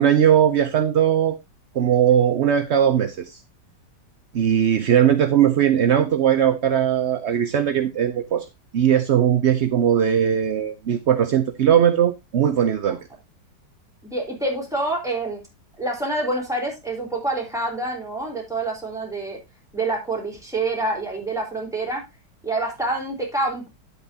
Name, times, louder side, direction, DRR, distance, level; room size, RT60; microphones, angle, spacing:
voice 1, 0.0-1.4 1.7-3.4 4.3-8.5 8.7-13.0, right 9 dB, 60° right, 0.7 m, -19 dB
voice 2, 14.0-15.4 15.8-19.4 19.7-22.0 22.4-23.7, right 2 dB, ahead, 4.0 m, -27 dB
10.5 x 8.1 x 2.8 m
omnidirectional pair, 1.9 m